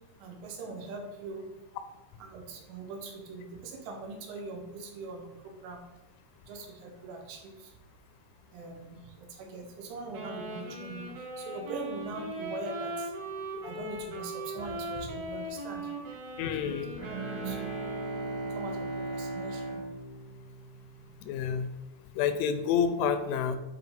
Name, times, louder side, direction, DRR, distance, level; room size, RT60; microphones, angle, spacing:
voice 1, 0.2-1.5 2.2-5.8 6.4-7.7 8.5-11.1 11.4-13.1 13.6-15.9 16.5-16.8 17.5-17.9 18.6-19.9, right 3 dB, 85° right, 3 dB, 3.6 m, -42 dB
Wind instrument woodwind instrument, 10.1-18.6, right 1 dB, 60° right, 2.3 m, -39 dB
voice 2, 16.4-16.9 21.2-21.7 22.2-23.6, left 7 dB, 85° left, 9 dB, 3.0 m, -28 dB
Bowed string instrument, 16.9-21.2, right 2 dB, 45° right, 1.0 m, -37 dB
9.4 x 4.8 x 3.8 m, 1.0 s
omnidirectional pair, 5.4 m